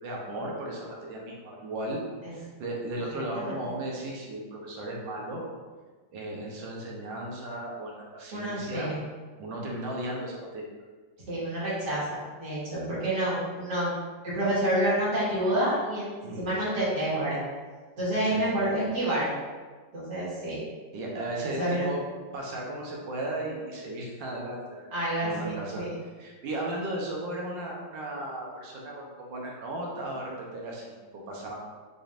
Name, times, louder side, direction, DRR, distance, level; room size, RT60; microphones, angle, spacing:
voice 1, 0.0-2.0 2.4-5.4 6.1-8.9 9.4-10.6 16.2-16.4 18.2-18.4 20.9-22.0 22.3-24.9 25.2-25.8 26.2-30.9 31.3-31.6, right 1 dB, 85° right, -2 dB, 1.7 m, -35 dB
voice 2, 8.3-9.0 11.3-13.9 14.2-16.1 16.4-17.4 18.0-19.3 19.9-20.6 21.4-21.9 24.9-25.9, right 1 dB, 65° right, -9 dB, 2.3 m, -28 dB
6.0 x 3.5 x 2.5 m, 1.4 s
omnidirectional pair, 2.0 m